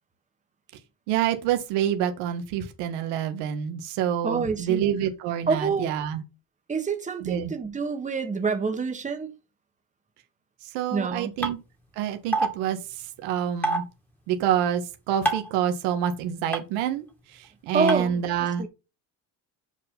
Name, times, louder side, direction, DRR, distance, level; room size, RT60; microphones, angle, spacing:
voice 1, 1.1-6.2 7.2-7.5 10.6-11.6 11.9-13.8 14.3-17.0 17.3-18.7, right 10 dB, 90° right, 1.7 m, -27 dB
voice 2, 4.2-4.9 5.5-5.9 6.7-9.3 10.9-11.3 17.7-18.2 18.6-18.7, right 4 dB, 20° right, 1.5 m, -27 dB
sound 1, 11.4-11.5 12.3-12.5 13.6-13.8 15.3-15.5 16.5-16.6 17.9-18.0, right 2 dB, 5° left, 2.2 m, -23 dB
8.1 x 4.8 x 5.3 m
cardioid pair, 120°, 40 cm